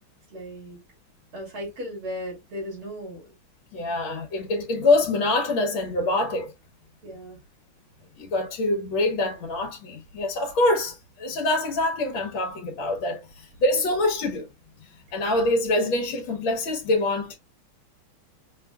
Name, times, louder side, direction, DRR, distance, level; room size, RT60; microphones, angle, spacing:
voice 1, 0.3-0.8 1.3-3.3 7.0-7.4, equal, 75° right, 3.6 m, -36 dB
voice 2, 3.7-6.5 8.2-14.5 15.1-17.4, left 2 dB, 70° left, 1.7 m, -25 dB
5.9 x 2.4 x 2.2 m
omnidirectional pair, 2.4 m